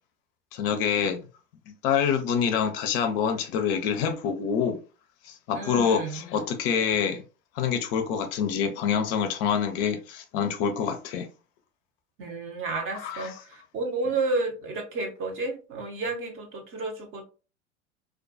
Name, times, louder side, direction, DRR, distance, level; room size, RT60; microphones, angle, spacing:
voice 1, 0.5-1.2 1.8-4.8 5.2-7.2 7.6-11.3 12.9-13.3, left 7 dB, 50° left, 0.5 m, -26 dB
voice 2, 5.5-6.2 12.2-17.2, right 3 dB, 35° right, 0.8 m, -31 dB
2.4 x 2.2 x 2.5 m
hypercardioid pair, 90°, 37 cm